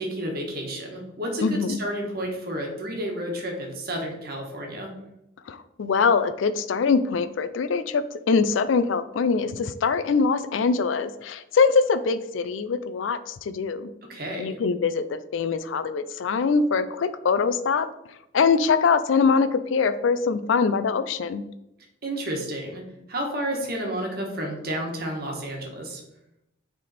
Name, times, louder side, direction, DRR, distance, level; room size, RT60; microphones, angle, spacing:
voice 1, 0.0-4.9 14.1-14.6 22.0-22.8 23.1-26.0, right 1 dB, 50° right, 1 dB, 1.4 m, -31 dB
voice 2, 1.4-1.8 5.5-13.9 14.4-17.9 18.3-21.4, left 5 dB, 80° left, 12 dB, 0.4 m, -23 dB
6.4 x 3.6 x 4.2 m, 0.85 s
head